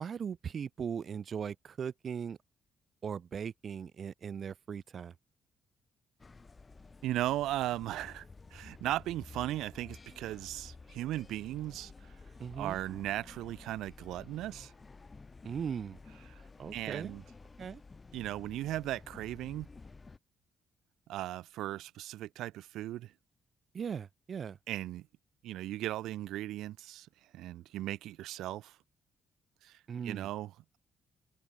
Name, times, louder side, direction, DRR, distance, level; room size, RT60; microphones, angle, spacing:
voice 1, 0.0-2.4 3.0-5.1 12.4-12.8 15.4-16.0 16.6-17.2 17.6-17.8 23.7-24.6 29.9-30.3, right 7 dB, 50° right, 1.3 m, -39 dB
sound 1, 6.2-20.2, left 3 dB, 25° left, 4.3 m, -52 dB
voice 2, 7.0-8.2 8.5-11.9 12.6-14.7 16.3-16.4 16.7-17.2 18.1-19.7 21.1-23.1 24.7-25.1 25.4-27.1 27.3-28.8 29.6-29.8 30.0-30.8, right 14 dB, 85° right, 1.6 m, -37 dB
cardioid pair, 90°, 0 cm